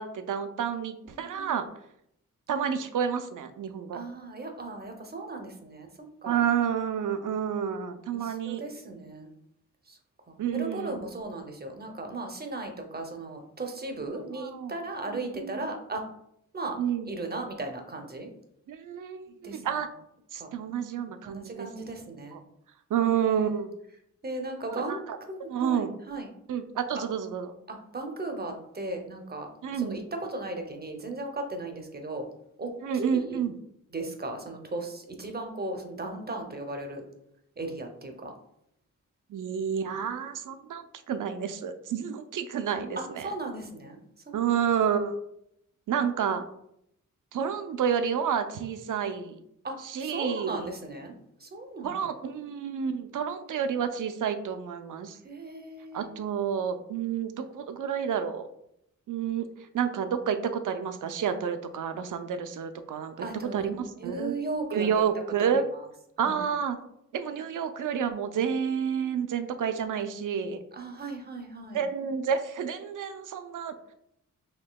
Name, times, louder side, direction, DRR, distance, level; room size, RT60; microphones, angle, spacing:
voice 1, 0.0-1.7 2.5-4.0 6.2-8.6 10.4-11.0 14.4-14.7 15.1-15.7 16.8-17.1 18.7-19.9 20.3-21.7 22.3-22.4 22.9-23.7 24.7-25.2 25.5-25.9 26.5-27.5 29.6-30.0 32.8-33.5 39.3-43.3 44.3-45.2 45.9-46.4 47.3-49.4 49.8-50.7 51.8-55.2 55.9-58.5 59.1-59.5 59.7-63.3 63.5-64.3 64.7-65.7 66.2-66.8 67.1-70.6 71.7-73.7, right 7 dB, 70° right, 9 dB, 0.5 m, -30 dB
voice 2, 1.1-1.6 3.9-5.9 6.2-6.4 8.1-9.3 9.9-10.0 10.3-16.1 16.5-16.8 17.1-18.3 19.4-19.8 20.4-20.5 21.2-22.4 23.4-23.5 24.2-25.0 25.3-26.3 27.7-32.3 32.6-33.5 33.9-37.0 37.6-38.3 43.0-44.0 49.6-51.1 51.4-52.0 55.2-56.2 63.2-63.7 64.0-65.1 65.4-65.5 66.2-66.4 70.7-71.8, right 2 dB, 30° right, 4 dB, 0.6 m, -36 dB
4.4 x 2.7 x 2.2 m, 0.77 s
cardioid pair, 60°, 32 cm